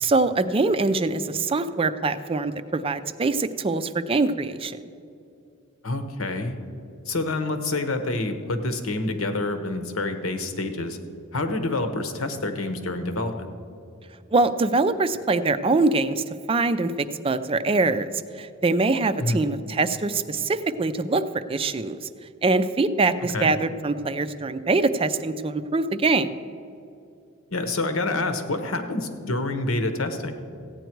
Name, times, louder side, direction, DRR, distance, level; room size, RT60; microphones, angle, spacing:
voice 1, 0.0-4.8 14.3-16.9 17.2-18.1 18.4-22.0 22.4-26.4, right 3 dB, 25° right, 11 dB, 0.4 m, -23 dB
voice 2, 5.8-6.5 7.1-11.0 11.3-13.5 19.2-19.5 23.3-23.5 27.5-30.3, left 2 dB, 75° left, 7 dB, 1.1 m, -27 dB
15.0 x 9.2 x 4.6 m, 2.6 s
head